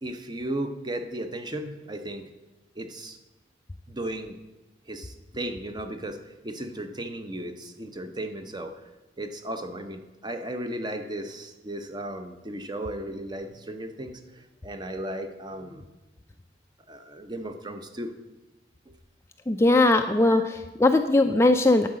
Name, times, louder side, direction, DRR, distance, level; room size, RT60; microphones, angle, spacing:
voice 1, 0.0-2.3 2.8-3.2 3.9-4.4 4.9-8.8 9.2-15.8 16.9-18.1 18.9-19.0 20.2-20.4, right 1 dB, 25° right, 7 dB, 0.7 m, -35 dB
voice 2, 19.5-21.9, left 2 dB, 15° left, 7 dB, 0.3 m, -20 dB
10.5 x 4.8 x 7.5 m, 1.1 s
head